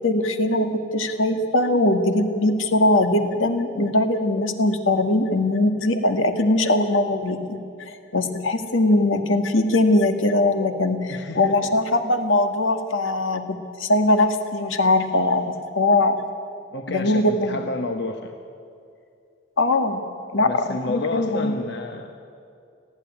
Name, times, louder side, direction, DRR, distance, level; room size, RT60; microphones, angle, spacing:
voice 1, 0.0-16.2 16.9-17.6 19.6-20.0 20.3-21.5, left 2 dB, 80° left, 6 dB, 1.6 m, -21 dB
voice 2, 11.1-11.7 16.7-18.3 20.4-22.2, left 2 dB, 55° left, 5 dB, 1.0 m, -30 dB
19.5 x 15.0 x 9.9 m, 2.4 s
head